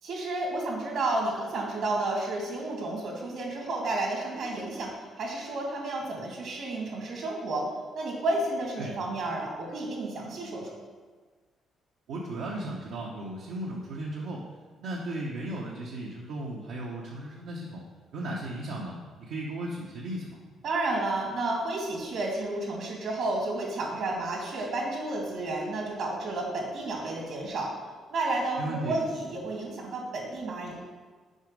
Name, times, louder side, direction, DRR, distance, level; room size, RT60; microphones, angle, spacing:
voice 1, 0.0-7.7 7.9-10.8 20.6-27.7 28.1-30.8, right 2 dB, 75° right, -2 dB, 2.3 m, -31 dB
voice 2, 12.1-14.5 14.8-17.8 18.1-20.4 28.6-29.0, right 1 dB, 90° right, -3 dB, 0.8 m, -35 dB
6.3 x 5.3 x 5.1 m, 1.4 s
cardioid pair, 90°, 0 cm